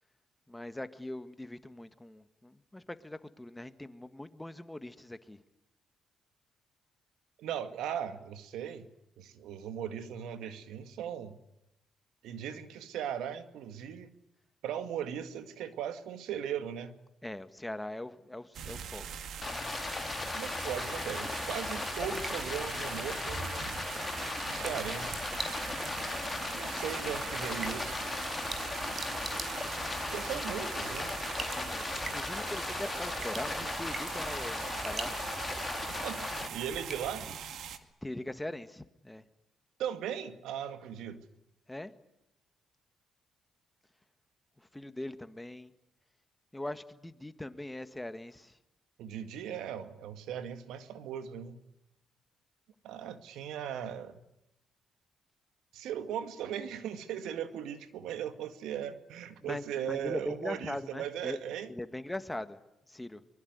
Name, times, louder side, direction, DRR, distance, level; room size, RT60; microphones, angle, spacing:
voice 1, 0.5-5.4 17.2-19.1 30.3-30.4 31.5-35.3 38.0-39.2 41.7-41.9 44.6-45.7 46.5-48.6 59.4-61.4 61.7-62.6 62.9-63.2, left 1 dB, 10° left, 1.7 m, -41 dB
voice 2, 7.4-8.9 9.2-11.4 12.2-14.2 14.6-17.0 20.3-23.6 24.5-25.2 26.5-28.0 30.1-31.2 36.0-37.3 39.8-41.2 49.0-51.6 52.8-54.2 55.7-61.7, right 9 dB, 85° right, 2.1 m, -38 dB
sound 1, 18.5-37.8, right 8 dB, 70° right, 2.2 m, -42 dB
Stream, 19.4-36.5, left 3 dB, 25° left, 1.8 m, -37 dB
sound 2, 21.6-37.7, right 3 dB, 35° right, 5.3 m, -46 dB
24.0 x 23.0 x 9.5 m
cardioid pair, 90°, 0 cm